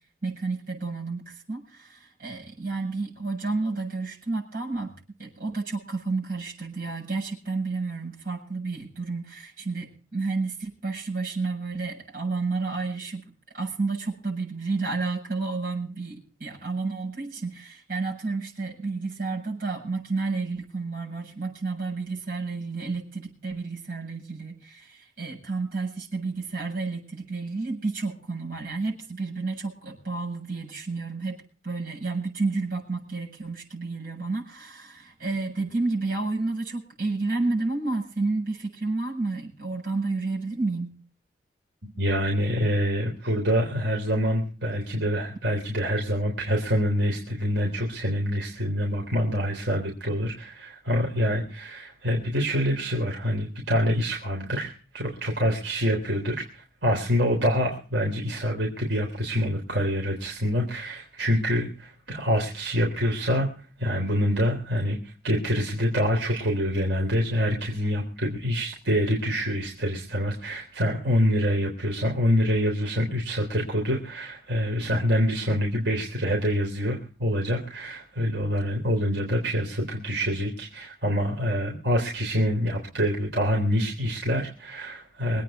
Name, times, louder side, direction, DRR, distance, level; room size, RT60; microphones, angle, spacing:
voice 1, 0.2-4.9 5.2-13.2 13.5-40.9, right 3 dB, 50° right, -1 dB, 7.8 m, -31 dB
voice 2, 42.0-63.5 63.8-65.0 65.2-85.4, equal, 75° right, -1 dB, 3.7 m, -26 dB
24.5 x 9.2 x 4.5 m, 0.38 s
head